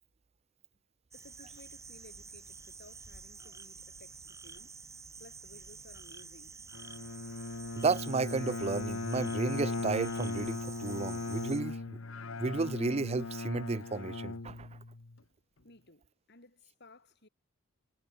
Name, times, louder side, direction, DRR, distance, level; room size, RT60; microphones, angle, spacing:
voice 1, 1.1-4.8 5.2-6.6 15.6-17.3, left 2 dB, 50° left, 5.7 m, -58 dB
sound 1, 1.1-11.6, right 4 dB, 15° right, 1.5 m, -49 dB
Bowed string instrument, 6.7-15.2, left 3 dB, 70° left, 1.1 m, -38 dB
voice 2, 7.8-12.0 12.4-14.7, right 4 dB, 30° right, 0.4 m, -33 dB
head